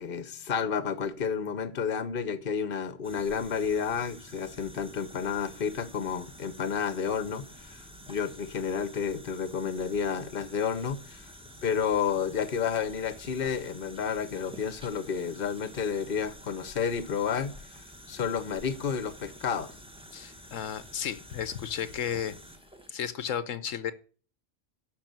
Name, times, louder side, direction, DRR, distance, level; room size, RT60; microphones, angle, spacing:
voice 1, 0.0-7.8 8.1-11.2 11.6-17.5 18.1-19.7, left 6 dB, 45° left, 1.1 m, -31 dB
sound 1, 3.0-22.9, equal, 5° right, 1.4 m, -49 dB
voice 2, 20.1-22.4 22.9-23.9, left 8 dB, 80° left, 1.2 m, -33 dB
12.0 x 5.5 x 9.0 m
omnidirectional pair, 1.3 m